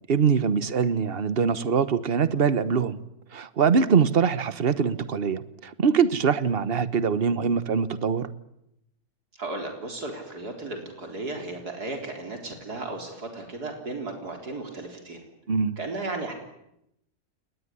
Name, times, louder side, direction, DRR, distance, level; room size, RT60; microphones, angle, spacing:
voice 1, 0.1-3.0 3.3-8.3 15.5-15.8, right 6 dB, 40° right, 14 dB, 1.3 m, -23 dB
voice 2, 9.4-15.2 15.8-16.3, right 2 dB, 85° right, 3 dB, 4.6 m, -35 dB
29.5 x 19.5 x 9.9 m, 0.83 s
omnidirectional pair, 1.6 m